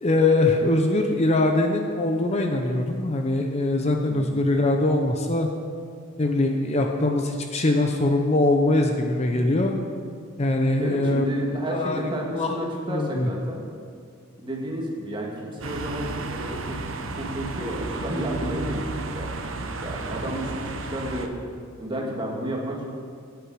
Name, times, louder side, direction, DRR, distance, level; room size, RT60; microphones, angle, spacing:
voice 1, 0.0-5.5 6.2-9.8 10.4-11.2 11.7-12.0 12.3-12.5 12.9-13.3, left 2 dB, 30° left, 3 dB, 0.7 m, -22 dB
voice 2, 4.1-4.4 10.8-13.6 14.4-19.3 19.8-21.3 21.8-22.9, equal, 20° right, -1 dB, 1.8 m, -31 dB
sound 1, 15.6-21.3, right 3 dB, 65° right, 0.9 m, -33 dB
16.0 x 8.3 x 4.8 m, 2.2 s
head